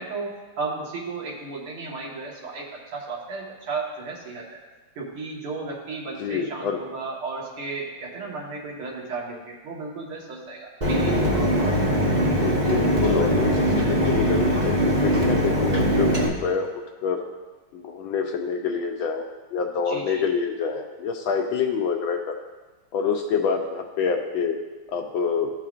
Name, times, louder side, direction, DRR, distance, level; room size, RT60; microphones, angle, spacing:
voice 1, 0.0-4.6 5.0-11.1 19.9-20.2, right 3 dB, 70° right, -3 dB, 2.3 m, -34 dB
voice 2, 6.2-6.8 12.3-17.2 17.7-22.4 22.9-24.6 24.9-25.5, left 6 dB, 75° left, 3 dB, 1.3 m, -27 dB
Mechanisms, 10.8-16.3, equal, 30° right, 0.9 m, -21 dB
15.0 x 5.7 x 2.4 m, 1.3 s
omnidirectional pair, 2.4 m